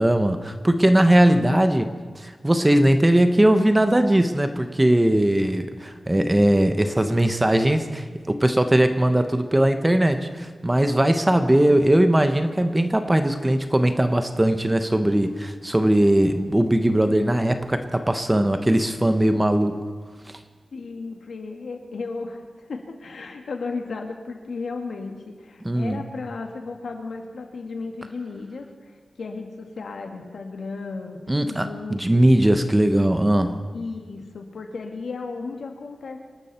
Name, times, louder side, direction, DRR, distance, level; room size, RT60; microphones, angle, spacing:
voice 1, 0.0-19.8 25.6-26.0 31.3-33.6, right 1 dB, 10° right, 8 dB, 0.9 m, -20 dB
voice 2, 20.7-22.4 22.7-32.4 33.7-36.2, left 4 dB, 75° left, 3 dB, 2.0 m, -34 dB
26.5 x 12.5 x 4.3 m, 1.5 s
wide cardioid pair, 165°, 0 cm